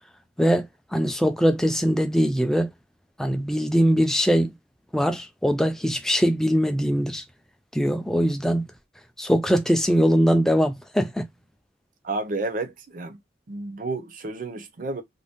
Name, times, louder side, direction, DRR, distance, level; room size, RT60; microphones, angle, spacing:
voice 1, 0.9-2.7 3.2-4.5 4.9-7.2 7.7-8.7 9.2-11.3, equal, 5° left, 0.3 m, -21 dB
voice 2, 12.0-13.2 13.5-15.0, right 2 dB, 45° right, 0.5 m, -31 dB
2.6 x 2.0 x 3.4 m
head